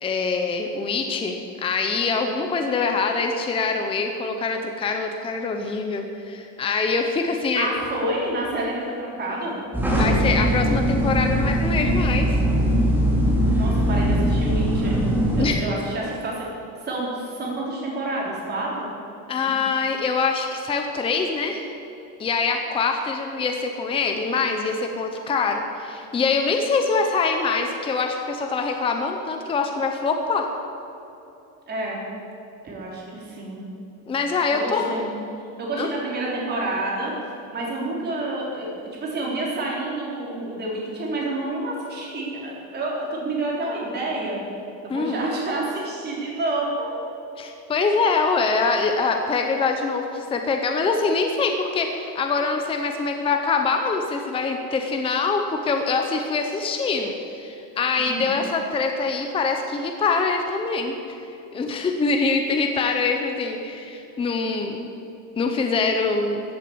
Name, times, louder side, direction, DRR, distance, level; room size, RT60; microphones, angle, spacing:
voice 1, 0.0-7.7 9.9-12.4 15.4-15.7 19.3-21.7 22.2-30.5 34.1-35.0 35.8-35.9 44.9-45.2 47.4-61.0 61.5-64.9 65.4-66.4, left 4 dB, 15° left, 4 dB, 0.8 m, -24 dB
voice 2, 7.6-9.6 13.5-15.1 15.4-16.4 16.8-18.9 19.4-19.5 31.7-32.0 32.6-33.6 34.5-35.1 35.6-37.1 37.5-44.4 44.8-46.9 58.0-58.4, right 2 dB, 25° right, -3 dB, 3.7 m, -29 dB
sound 1, 9.7-15.5, equal, 5° right, 2.3 m, -21 dB
15.0 x 8.5 x 8.7 m, 2.8 s
cardioid pair, 175°, 36 cm